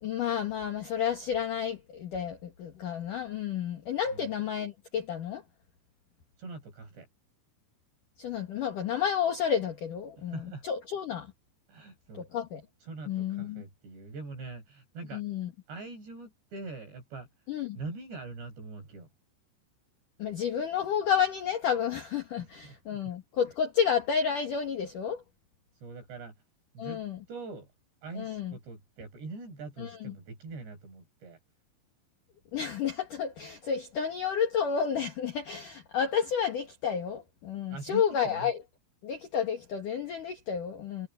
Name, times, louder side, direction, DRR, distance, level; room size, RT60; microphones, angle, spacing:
voice 1, 0.0-5.4 8.2-11.3 12.2-12.6 13.1-13.6 15.1-15.5 17.5-17.8 20.2-25.2 26.8-27.2 28.2-28.5 29.8-30.1 32.5-38.6 39.0-41.1, left 7 dB, 55° left, 2.9 m, -31 dB
voice 2, 6.4-7.1 10.2-10.6 11.7-12.2 12.8-15.2 15.7-17.3 17.8-19.1 22.4-23.1 25.8-26.3 26.7-27.0 27.3-27.7 28.0-31.4 37.7-38.5, right 3 dB, 60° right, 8.3 m, -43 dB
omnidirectional pair, 5.5 m